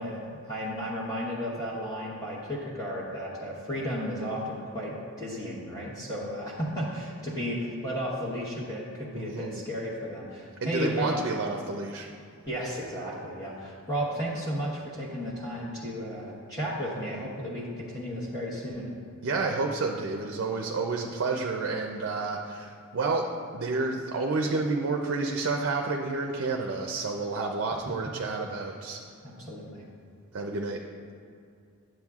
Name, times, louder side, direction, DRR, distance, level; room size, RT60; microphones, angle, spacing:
voice 1, 0.0-11.2 12.5-18.9 29.2-29.8, equal, 15° left, -7 dB, 1.0 m, -33 dB
voice 2, 9.1-9.6 10.6-12.1 19.2-23.3 23.5-29.0 30.3-30.8, right 3 dB, 55° right, 2 dB, 0.5 m, -30 dB
10.5 x 7.6 x 2.4 m, 2.4 s
head